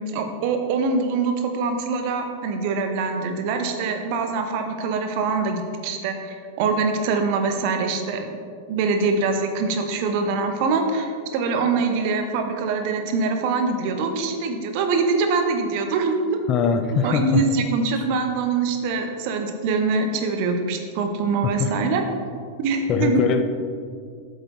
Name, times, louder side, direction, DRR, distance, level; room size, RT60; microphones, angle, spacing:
voice 1, 0.0-8.3 8.7-16.4 17.0-22.0 22.6-23.3, right 4 dB, 45° right, 5 dB, 0.9 m, -24 dB
voice 2, 16.5-17.4 21.6-21.7 22.9-23.4, left 7 dB, 35° left, 8 dB, 0.5 m, -21 dB
8.1 x 7.6 x 3.1 m, 2.1 s
figure-of-eight pair, 90°, 0 cm